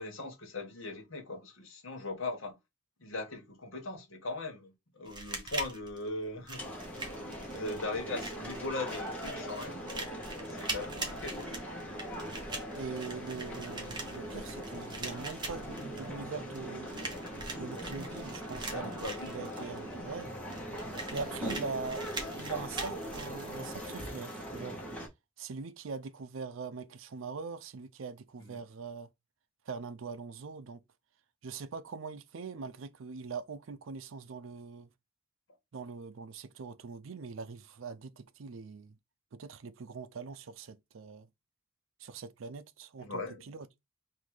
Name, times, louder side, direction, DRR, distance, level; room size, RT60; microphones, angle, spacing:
voice 1, 0.0-2.6 3.0-6.6 7.5-10.1 10.5-11.5 18.7-19.4 28.4-28.6 43.0-43.4, left 2 dB, 75° left, 1.4 m, -39 dB
sound 1, 5.1-24.1, right 3 dB, 20° right, 1.1 m, -43 dB
sound 2, 6.6-25.1, equal, 5° left, 1.3 m, -41 dB
sound 3, 10.7-15.9, equal, 50° left, 1.0 m, -54 dB
voice 2, 12.7-16.9 17.5-20.3 21.1-22.0 22.4-24.8 25.4-29.1 29.7-30.8 31.4-34.9 35.7-39.0 39.3-41.3 42.0-43.7, right 5 dB, 70° right, 0.5 m, -42 dB
3.8 x 2.7 x 4.7 m
head